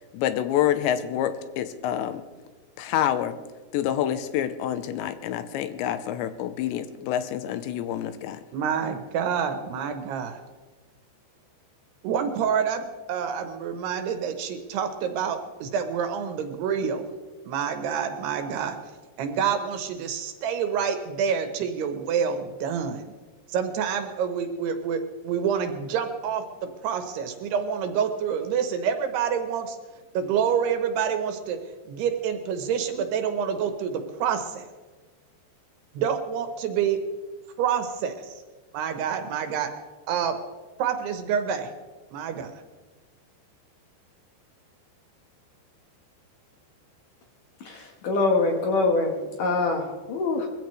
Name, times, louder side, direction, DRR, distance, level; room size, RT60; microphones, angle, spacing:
voice 1, 0.1-2.2 2.8-3.4 3.7-8.4, left 11 dB, 90° left, 11 dB, 3.0 m, -27 dB
voice 2, 8.5-10.4 12.0-17.0 17.5-18.8 19.2-23.1 23.5-26.4 26.8-29.8 30.1-31.6 31.9-34.7 35.9-37.0 37.6-38.4 38.7-39.7 40.1-40.4 40.8-41.7 42.1-42.5, right 7 dB, 75° right, 7 dB, 2.8 m, -27 dB
voice 3, 47.7-50.5, left 3 dB, 65° left, 2 dB, 2.2 m, -24 dB
22.0 x 15.0 x 3.2 m, 1.3 s
omnidirectional pair, 5.2 m